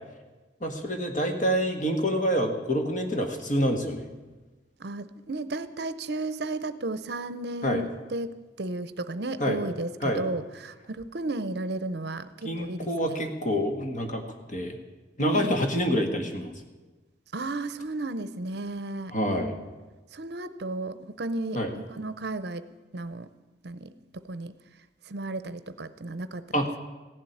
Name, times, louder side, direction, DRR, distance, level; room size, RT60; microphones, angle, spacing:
voice 1, 0.6-4.0 7.6-7.8 9.4-9.6 10.0-10.2 12.4-14.2 14.5-14.8 15.2-16.5 19.1-19.5 21.5-21.7 26.5-26.7, equal, 40° left, 4 dB, 1.7 m, -27 dB
voice 2, 4.8-13.2 15.2-15.6 17.3-19.2 20.1-22.7 22.9-23.3 23.6-24.5 25.0-26.6, right 2 dB, 60° right, 13 dB, 0.7 m, -34 dB
15.5 x 7.5 x 9.9 m, 1.2 s
head